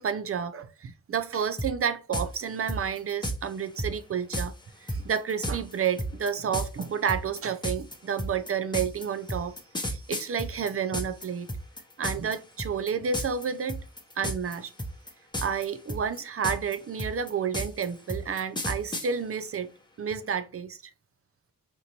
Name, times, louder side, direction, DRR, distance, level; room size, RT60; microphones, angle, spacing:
voice 1, 0.0-4.5 4.8-9.5 9.8-11.5 12.0-13.8 14.2-14.7 15.4-19.7 20.0-20.8, right 7 dB, 45° right, 0.5 m, -30 dB
sound 1, 1.6-1.7 2.1-2.3 2.7-3.4 3.8-3.9 4.3-4.5 4.9-11.2 11.5-12.3 12.6-12.9 13.1-13.4 13.7-14.5 14.8-15.6 15.9-19.1, equal, 15° left, 0.9 m, -31 dB
4.5 x 2.5 x 2.9 m
cardioid pair, 70°, 33 cm